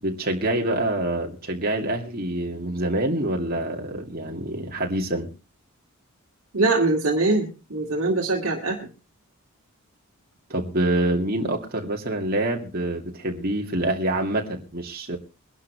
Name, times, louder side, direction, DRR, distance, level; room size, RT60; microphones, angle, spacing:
voice 1, 0.0-5.3 10.5-15.2, right 1 dB, 45° right, 2 dB, 2.5 m, -26 dB
voice 2, 6.5-8.9, right 2 dB, 65° right, -1 dB, 2.3 m, -23 dB
22.5 x 11.5 x 3.2 m, 0.32 s
head